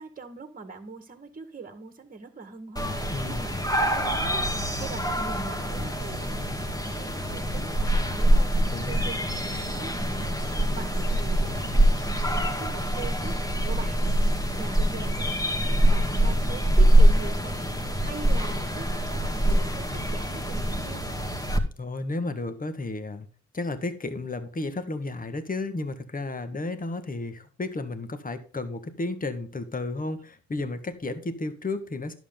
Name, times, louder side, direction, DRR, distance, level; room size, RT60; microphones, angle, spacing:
voice 1, 0.0-15.4 15.8-17.6 18.0-21.2, right 4 dB, 30° right, 8 dB, 1.8 m, -42 dB
sound 1, 2.8-21.6, right 1 dB, 10° left, 2.1 m, -24 dB
voice 2, 3.1-3.5 8.7-9.3 21.8-23.3 23.5-32.1, left 2 dB, 30° left, 10 dB, 1.7 m, -33 dB
11.0 x 7.3 x 3.8 m, 0.39 s
supercardioid pair, 55°, 30 cm